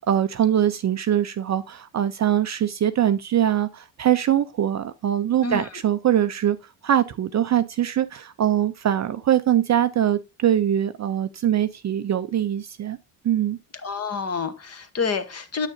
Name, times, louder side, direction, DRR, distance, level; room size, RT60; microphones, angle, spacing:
voice 1, 0.1-6.6 6.8-13.0 13.2-13.6, right 10 dB, 35° right, 0.5 m, -22 dB
voice 2, 13.8-15.7, left 4 dB, 30° left, 1.1 m, -28 dB
8.4 x 6.2 x 2.7 m
supercardioid pair, 80°, 47 cm